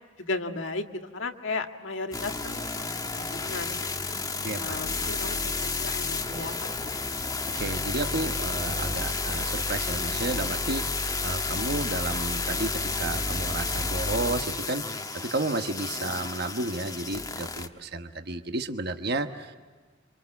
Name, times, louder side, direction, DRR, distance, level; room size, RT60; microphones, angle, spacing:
voice 1, 0.2-2.9 3.1-4.2 4.6-6.7, left 3 dB, 75° left, 5 dB, 1.8 m, -35 dB
sound 1, 2.1-17.7, left 3 dB, 20° left, 1.3 m, -31 dB
voice 2, 4.4-5.1 7.2-19.5, right 2 dB, 55° right, 7 dB, 1.2 m, -32 dB
sound 2, 6.3-10.0, right 1 dB, 35° right, 2.1 m, -49 dB
29.0 x 25.5 x 7.1 m, 1.4 s
head